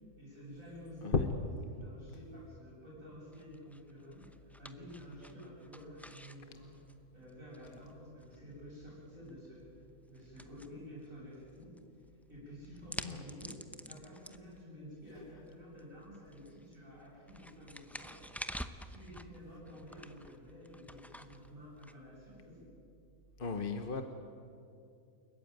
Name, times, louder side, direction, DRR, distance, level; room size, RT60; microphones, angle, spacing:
voice 1, 0.2-1.2 1.7-6.8 7.1-9.7 10.1-11.7 12.3-13.6 13.9-18.2 18.9-22.6, equal, 80° right, -6 dB, 8.0 m, -51 dB
sound 1, 3.3-22.6, equal, ahead, 0.5 m, -51 dB
voice 2, 23.4-24.0, left 5 dB, 45° left, 6 dB, 1.2 m, -33 dB
29.5 x 14.5 x 9.4 m, 2.5 s
omnidirectional pair, 1.4 m